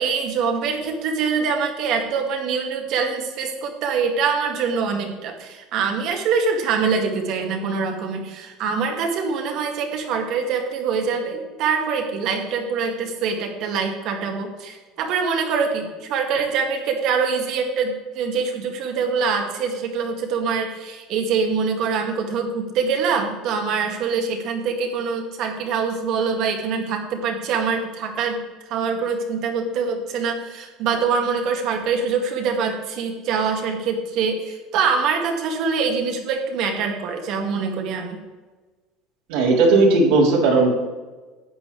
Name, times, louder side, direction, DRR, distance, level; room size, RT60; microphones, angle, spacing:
voice 1, 0.0-28.4 28.7-38.2, right 5 dB, 60° right, 3 dB, 2.0 m, -24 dB
voice 2, 39.3-40.7, right 3 dB, 80° right, -3 dB, 3.6 m, -16 dB
13.0 x 8.7 x 3.4 m, 1.3 s
supercardioid pair, 125°, 0 cm